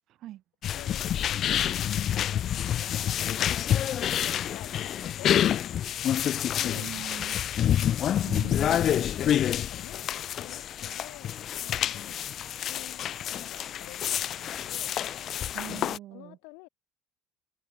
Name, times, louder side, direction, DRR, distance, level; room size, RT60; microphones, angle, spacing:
sound 1, 0.6-16.0, left 10 dB, 35° left, 0.4 m, -28 dB
voice 1, 0.8-1.8 2.3-3.9 4.2-5.8 6.6-7.9 9.1-12.3 12.7-15.0 16.1-16.7, left 37 dB, 80° left, 5.5 m, -50 dB
voice 2, 6.7-7.4 8.2-9.1 15.5-16.4, right 14 dB, 45° right, 4.0 m, -42 dB
cardioid pair, 175°, 0 cm